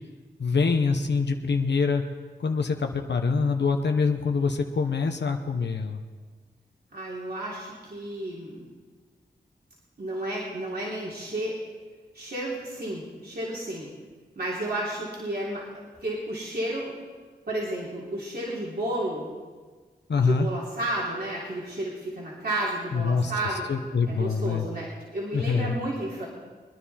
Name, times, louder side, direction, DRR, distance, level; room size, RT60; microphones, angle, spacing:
voice 1, 0.4-2.0 2.4-6.0 20.1-20.5 22.9-23.3 23.7-24.7 25.3-25.8, left 4 dB, 70° left, 4 dB, 1.0 m, -25 dB
voice 2, 6.9-8.7 10.0-11.5 12.1-13.9 14.3-16.9 17.5-19.3 20.1-23.7 24.1-26.3, right 1 dB, 60° right, -6 dB, 3.2 m, -32 dB
23.0 x 10.0 x 4.2 m, 1.5 s
cardioid pair, 45°, 19 cm